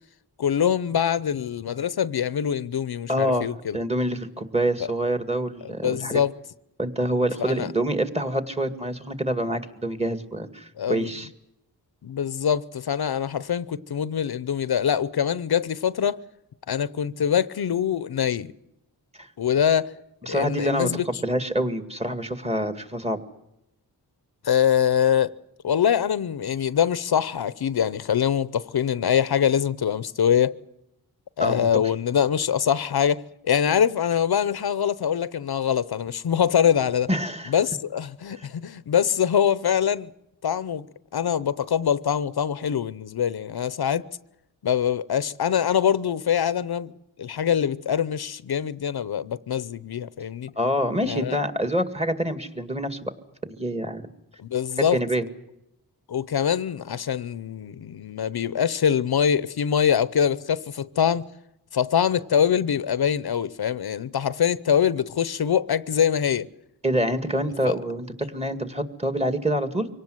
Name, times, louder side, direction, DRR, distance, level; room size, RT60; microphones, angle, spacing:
voice 1, 0.4-3.8 4.8-4.9 5.6-6.3 7.4-7.7 10.8-11.1 12.0-16.2 16.7-18.5 19.4-19.9 20.3-21.0 24.4-25.3 25.6-30.5 31.4-37.1 37.5-40.1 40.4-40.8 41.1-44.1 44.6-46.9 47.2-50.5 51.1-51.4 54.4-55.0 56.1-61.2 61.7-66.5 67.6-67.7, left 8 dB, 70° left, 0.8 m, -24 dB
voice 2, 3.1-6.2 6.8-11.3 19.2-19.3 20.2-23.2 31.4-31.7 37.1-37.5 38.4-38.5 50.6-53.1 53.6-54.0 54.8-55.3 66.8-69.9, right 1 dB, 15° right, 2.1 m, -26 dB
24.5 x 18.0 x 7.9 m
cardioid pair, 70°, 39 cm